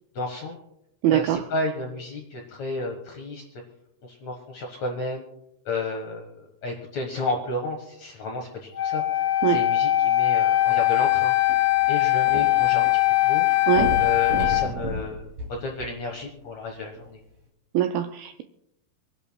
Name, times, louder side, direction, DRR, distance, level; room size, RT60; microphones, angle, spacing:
voice 1, 0.1-0.6 1.1-3.4 4.0-5.2 5.7-9.0 9.5-11.6 11.9-12.9 13.2-13.5 14.0-17.2, left 2 dB, 65° left, 1.8 m, -32 dB
voice 2, 1.0-1.4 9.4-9.6 13.7-13.9 17.7-18.4, right 11 dB, 85° right, 2.1 m, -22 dB
Wind instrument woodwind instrument, 8.7-14.7, left 15 dB, 50° left, 2.1 m, -21 dB
sound 1, 11.4-12.9 13.2-13.3 13.7-16.3 17.0-17.1, right 1 dB, 45° right, 3.8 m, -32 dB
27.0 x 10.5 x 2.2 m
omnidirectional pair, 4.8 m